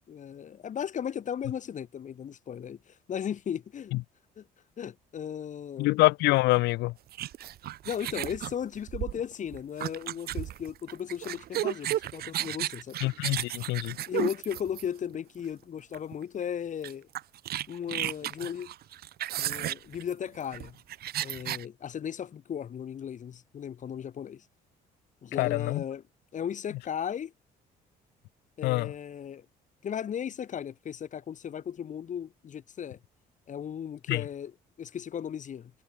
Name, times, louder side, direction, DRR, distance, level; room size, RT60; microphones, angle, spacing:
voice 1, 0.1-4.0 4.4-4.5 4.8-5.9 7.8-13.0 14.1-17.1 17.7-18.7 19.4-20.8 21.2-24.4 25.2-26.0 26.3-27.3 28.6-29.5 29.8-33.0 33.5-35.7, left 8 dB, 45° left, 5.8 m, -36 dB
voice 2, 5.8-6.9 13.0-14.0 25.4-25.8 28.6-28.9 34.1-34.2, left 20 dB, 90° left, 3.8 m, -25 dB
sound 1, 7.1-15.1 15.9-16.1 16.4-16.5 16.8-21.6, right 13 dB, 65° right, 4.5 m, -34 dB
cardioid pair, 110°, 17 cm